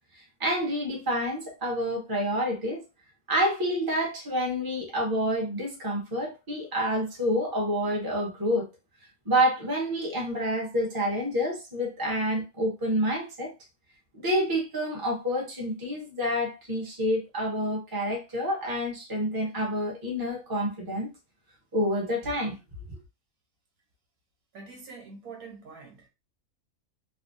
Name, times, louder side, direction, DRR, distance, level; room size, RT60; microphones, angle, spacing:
voice 1, 0.4-2.8 3.3-8.7 9.2-13.5 14.1-21.1 21.7-22.6, equal, 20° right, 0.8 m, -28 dB
voice 2, 24.5-26.1, right 4 dB, 85° right, 1.6 m, -45 dB
3.4 x 2.0 x 2.6 m
omnidirectional pair, 1.5 m